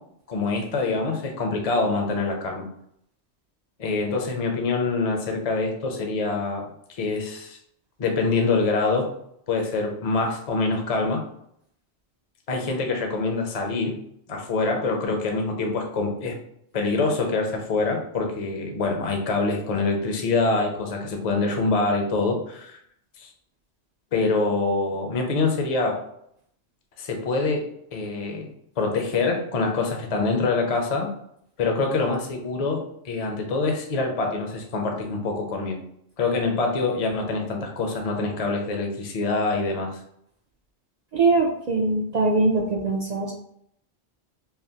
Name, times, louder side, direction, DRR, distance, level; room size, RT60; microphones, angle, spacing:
voice 1, 0.3-2.7 3.8-6.6 6.9-7.6 8.0-9.1 9.5-11.2 12.5-14.0 14.3-16.4 16.7-22.8 23.2-23.3 24.1-26.0 27.0-27.6 27.9-31.1 31.6-35.8 36.2-40.0, left 3 dB, 40° left, 2 dB, 0.6 m, -25 dB
voice 2, 41.1-43.3, right 3 dB, 50° right, 0 dB, 0.5 m, -22 dB
5.6 x 2.0 x 2.8 m, 0.71 s
omnidirectional pair, 1.1 m